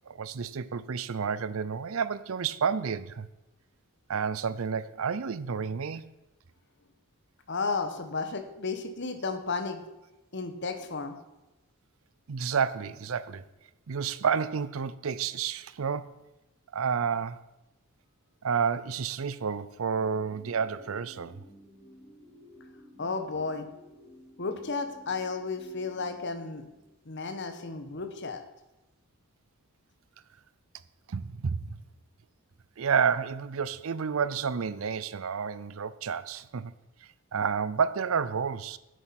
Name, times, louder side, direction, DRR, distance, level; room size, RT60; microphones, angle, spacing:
voice 1, 0.1-3.3 4.1-6.0 12.3-13.4 13.9-16.2 16.7-17.4 18.4-21.4 31.1-31.8 32.8-36.7 37.3-38.8, right 6 dB, 65° right, 0.5 m, -30 dB
voice 2, 7.5-9.8 10.3-11.2 23.0-23.7 24.4-26.6 27.0-28.4, left 4 dB, 55° left, 1.2 m, -33 dB
sound 1, 19.9-27.1, equal, 25° left, 4.1 m, -54 dB
9.8 x 8.1 x 5.9 m
head